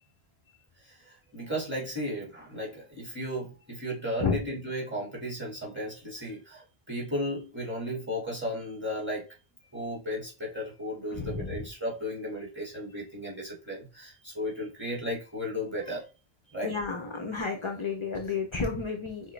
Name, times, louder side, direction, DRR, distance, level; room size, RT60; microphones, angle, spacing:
voice 1, 0.8-9.3 9.7-16.1 16.5-16.7, equal, 10° right, -3 dB, 1.8 m, -35 dB
voice 2, 11.1-11.7 16.6-19.3, left 4 dB, 40° left, 3 dB, 0.5 m, -32 dB
6.0 x 2.0 x 3.2 m, 0.31 s
omnidirectional pair, 1.1 m